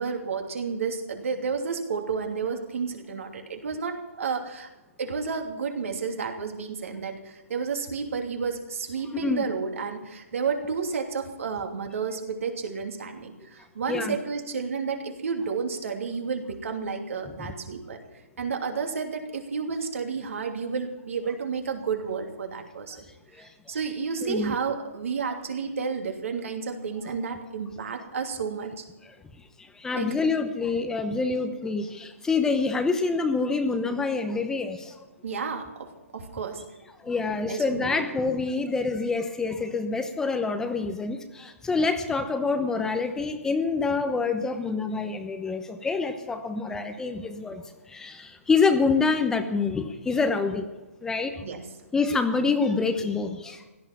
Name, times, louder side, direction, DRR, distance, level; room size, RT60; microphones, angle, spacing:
voice 1, 0.0-4.7 5.0-18.0 18.4-23.1 23.3-28.9 29.9-30.1 35.2-36.6 37.4-38.0 51.4-51.7 53.0-53.1, right 5 dB, 65° right, 4 dB, 2.8 m, -31 dB
voice 2, 29.6-35.0 37.0-47.6 47.9-50.6 51.0-51.4 51.9-53.6, left 4 dB, 5° left, 7 dB, 0.9 m, -26 dB
16.5 x 12.5 x 5.9 m, 1.1 s
hypercardioid pair, 145°, 8 cm